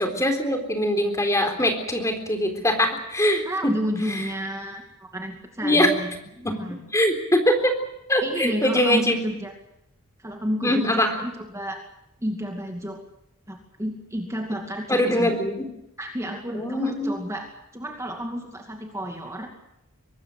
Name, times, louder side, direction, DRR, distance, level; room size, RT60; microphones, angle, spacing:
voice 1, 0.0-3.7 4.1-4.2 5.6-5.9 6.4-6.6 6.9-7.7 8.1-9.2 10.6-11.1 14.9-15.7 16.5-17.1, left 1 dB, 15° left, 5 dB, 3.8 m, -22 dB
voice 2, 3.4-6.8 8.2-9.5 10.2-11.8 12.2-13.0 13.5-15.3 16.0-17.5 17.7-19.5, equal, 15° right, 2 dB, 2.4 m, -31 dB
24.0 x 20.0 x 7.9 m, 0.82 s
head